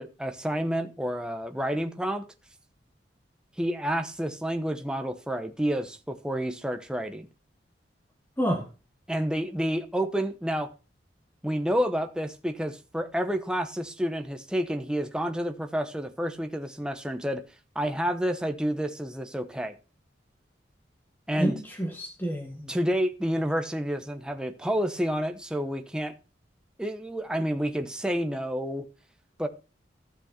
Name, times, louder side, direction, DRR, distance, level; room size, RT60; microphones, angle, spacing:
voice 1, 0.0-2.2 3.6-7.3 9.1-10.7 11.4-17.4 17.7-19.7 21.3-21.6 22.7-26.1 26.8-28.9 29.4-29.5, equal, 5° right, 0.9 m, -29 dB
voice 2, 21.4-22.7, equal, 10° left, 1.6 m, -29 dB
14.5 x 6.3 x 4.4 m
head